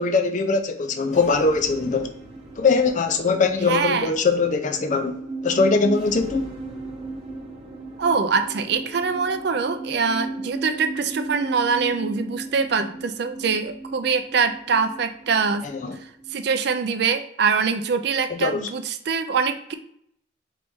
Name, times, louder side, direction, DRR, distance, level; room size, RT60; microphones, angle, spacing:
voice 1, 0.0-2.1 2.6-5.2 5.4-6.5 15.8-16.0 18.3-18.6, left 4 dB, 40° left, 0.4 m, -21 dB
sound 1, 1.1-16.5, right 2 dB, 30° right, 1.1 m, -36 dB
voice 2, 3.7-4.1 8.0-15.7 16.0-19.7, right 5 dB, 55° right, 0.4 m, -24 dB
4.0 x 3.2 x 3.5 m
head